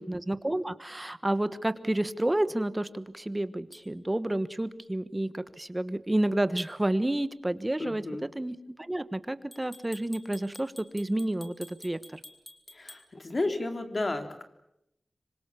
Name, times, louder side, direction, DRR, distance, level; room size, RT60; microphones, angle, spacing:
voice 1, 0.0-12.2, right 1 dB, 15° right, 13 dB, 1.3 m, -30 dB
sound 1, 3.7-3.9 6.6-6.8 9.5-13.1, left 1 dB, 15° left, 2.9 m, -50 dB
voice 2, 7.8-8.2 12.7-14.4, left 2 dB, 40° left, 6 dB, 3.2 m, -32 dB
26.5 x 25.5 x 7.1 m, 0.81 s
wide cardioid pair, 100°, 0 cm